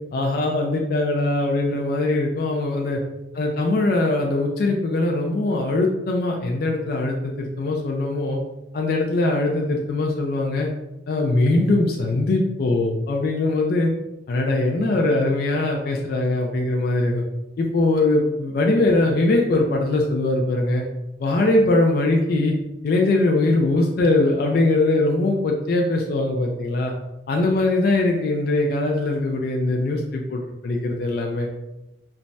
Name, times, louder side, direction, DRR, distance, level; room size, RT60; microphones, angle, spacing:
voice 1, 0.1-3.0 3.3-8.4 8.7-10.7 11.1-13.9 14.3-17.2 17.6-20.8 21.2-22.5 22.8-26.9 27.3-31.5, left 2 dB, 55° left, 1 dB, 0.3 m, -21 dB
3.3 x 2.0 x 2.6 m, 0.93 s
head